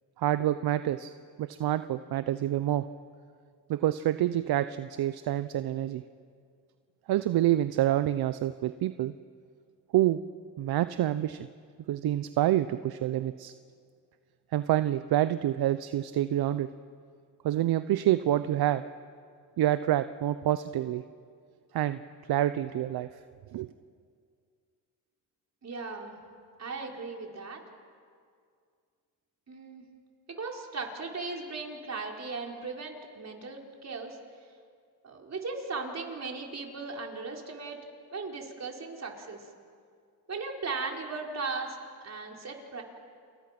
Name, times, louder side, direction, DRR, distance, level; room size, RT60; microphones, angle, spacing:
voice 1, 0.2-1.1 1.4-2.9 3.7-6.0 7.1-9.1 9.9-10.2 10.6-11.5 11.9-13.5 14.5-16.7 17.4-18.8 19.6-21.0 21.7-22.0 22.3-23.1 23.5-23.7, right 13 dB, 65° right, 12 dB, 0.8 m, -27 dB
voice 2, 25.6-26.2 26.6-27.6 29.5-29.8 30.3-34.2 35.0-37.8 38.1-39.5 40.3-42.8, right 4 dB, 40° right, 1 dB, 4.9 m, -37 dB
29.5 x 28.0 x 6.1 m, 2.2 s
supercardioid pair, 75°, 40 cm